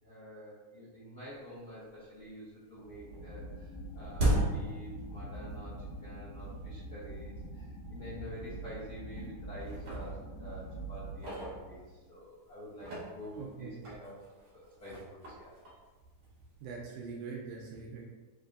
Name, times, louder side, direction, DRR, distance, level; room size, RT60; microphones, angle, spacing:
voice 1, 0.0-14.2 14.5-15.5, equal, 65° left, -12 dB, 0.9 m, -48 dB
sound 1, 1.4-1.5 1.9-2.5 2.7-5.6 5.9-6.0 6.8-6.9 7.4-7.5 7.8-8.0 8.7-9.2 9.6-12.2 12.7-16.6, right 1 dB, 55° right, 1.9 m, -37 dB
sound 2, 2.8-11.9, right 1 dB, 85° left, 2.1 m, -44 dB
voice 2, 13.4-13.8 16.6-18.1, right 5 dB, 80° right, -2 dB, 2.0 m, -42 dB
5.2 x 3.3 x 2.6 m, 1.2 s
omnidirectional pair, 3.8 m